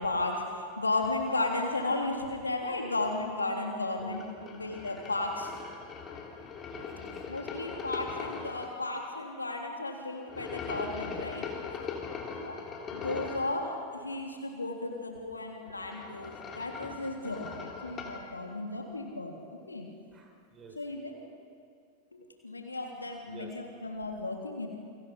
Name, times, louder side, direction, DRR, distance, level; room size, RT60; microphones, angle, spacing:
voice 1, 0.0-4.2 4.5-5.5 7.3-11.5 12.4-12.7 12.9-19.9 20.8-21.2 22.1-24.7, left 2 dB, 80° left, 2 dB, 3.5 m, -34 dB
voice 2, 4.0-4.5 6.6-7.1 20.1-20.8 23.3-23.5, right 3 dB, 25° right, 2 dB, 5.3 m, -50 dB
sound 1, 4.1-8.7 10.3-13.5 15.6-18.2, left 5 dB, 25° left, 3.6 m, -40 dB
29.0 x 25.0 x 5.6 m, 2.3 s
figure-of-eight pair, 90°, 0 cm